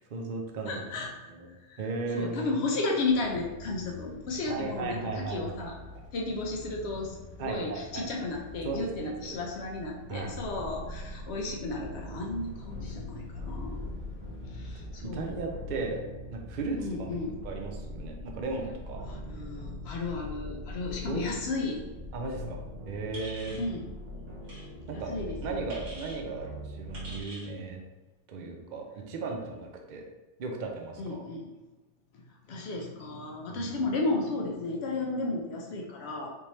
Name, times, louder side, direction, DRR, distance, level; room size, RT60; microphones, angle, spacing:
voice 1, 0.0-0.8 1.3-1.5 1.8-2.5 4.5-5.7 7.4-8.0 8.6-9.4 10.1-10.4 13.0-13.2 13.4-13.5 14.8-16.0 16.3-17.1 17.4-19.1 21.1-21.2 22.1-23.6 24.9-25.1 25.4-27.8 28.3-30.0 30.4-31.2 33.5-33.8, right 3 dB, 55° right, 2 dB, 0.6 m, -36 dB
voice 2, 0.6-1.3 1.7-1.8 2.1-5.8 6.1-13.8 14.5-15.4 16.8-17.4 19.1-21.9 23.5-23.8 24.9-25.8 31.0-31.5 32.1-32.2 32.5-36.3, left 3 dB, 65° left, 0 dB, 0.8 m, -33 dB
sound 1, 3.1-14.9, left 1 dB, 85° left, 1.2 m, -47 dB
sound 2, 10.1-27.2, left 1 dB, 85° right, 1.6 m, -42 dB
sound 3, 23.1-23.7 24.4-24.6 25.7-26.2 26.9-27.5, right 1 dB, 70° right, 1.7 m, -45 dB
3.5 x 2.8 x 3.0 m, 1.2 s
omnidirectional pair, 1.3 m